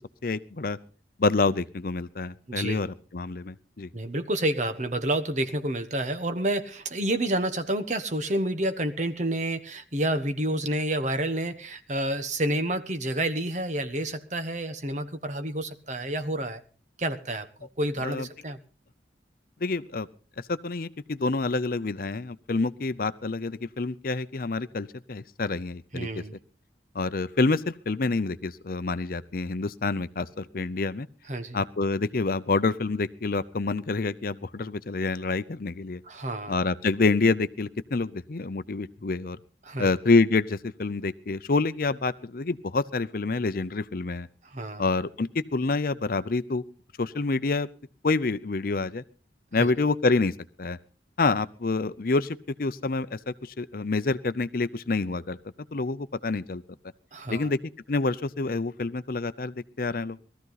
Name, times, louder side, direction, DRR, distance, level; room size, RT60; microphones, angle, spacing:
voice 1, 0.2-0.8 1.2-3.9 18.0-18.3 19.6-20.1 20.5-26.2 26.9-31.1 31.5-36.0 36.5-39.4 39.8-44.3 44.8-46.6 47.0-47.7 48.0-49.0 49.5-50.3 50.6-50.8 51.2-55.4 55.7-56.6 57.3-57.6 57.9-60.2, left 3 dB, 55° left, 14 dB, 0.6 m, -27 dB
voice 2, 2.5-2.8 3.9-16.6 17.0-18.6 25.9-26.3 31.3-31.6 36.0-36.6 39.6-39.9 44.4-44.8 49.6-49.7 57.1-57.5, right 1 dB, 40° right, 9 dB, 1.2 m, -29 dB
18.5 x 14.0 x 4.0 m, 0.38 s
head